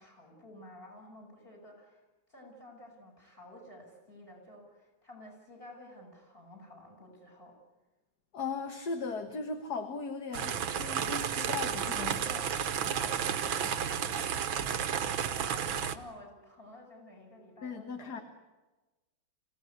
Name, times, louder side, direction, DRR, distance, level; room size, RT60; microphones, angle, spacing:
voice 1, 0.0-2.0 2.3-7.6 12.1-18.2, left 1 dB, 25° left, 2 dB, 8.1 m, -52 dB
voice 2, 8.3-12.2 17.6-18.2, left 4 dB, 55° left, 7 dB, 2.0 m, -37 dB
sound 1, 10.3-16.0, right 8 dB, 75° right, 2.0 m, -32 dB
26.0 x 17.0 x 9.7 m, 1.1 s
omnidirectional pair, 2.2 m